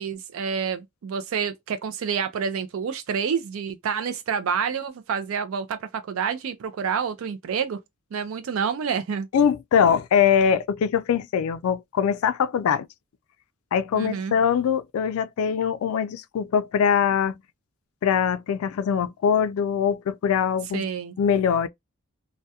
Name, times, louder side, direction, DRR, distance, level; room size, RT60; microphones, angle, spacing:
voice 1, 0.0-7.8 8.1-9.3 13.9-14.3 20.7-21.2, right 6 dB, 75° right, 0.4 m, -28 dB
voice 2, 9.3-12.9 13.7-17.3 18.0-20.8 21.2-21.7, left 7 dB, 80° left, 0.3 m, -22 dB
2.3 x 2.1 x 2.6 m
head